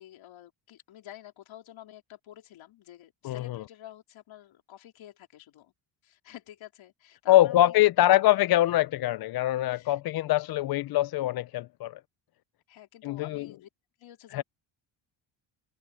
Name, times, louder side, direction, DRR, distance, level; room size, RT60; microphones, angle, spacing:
voice 1, 0.0-5.7 6.0-7.9 9.7-10.0 12.7-13.7 14.0-14.4, left 12 dB, 80° left, 4.1 m, -49 dB
voice 2, 3.2-3.6 7.3-12.0 13.0-13.5 14.3-14.4, left 14 dB, 55° left, 0.5 m, -24 dB
cardioid pair, 130°, 46 cm